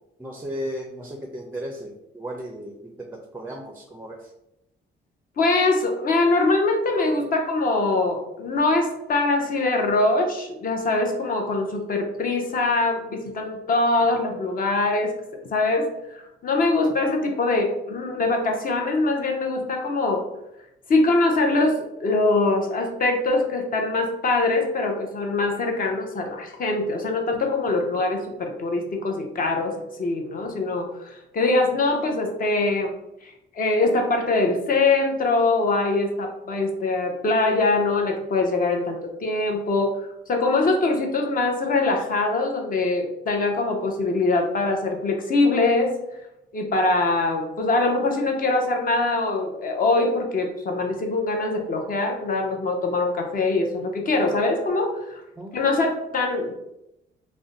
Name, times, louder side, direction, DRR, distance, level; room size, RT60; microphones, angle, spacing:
voice 1, 0.2-4.3 55.4-55.5, equal, 10° right, 1 dB, 0.4 m, -35 dB
voice 2, 5.4-15.1 15.5-20.2 20.9-32.9 33.2-45.9 46.5-55.2 55.5-56.6, left 2 dB, 45° left, 3 dB, 0.7 m, -23 dB
2.5 x 2.1 x 3.8 m, 0.84 s
cardioid pair, 90°, 20 cm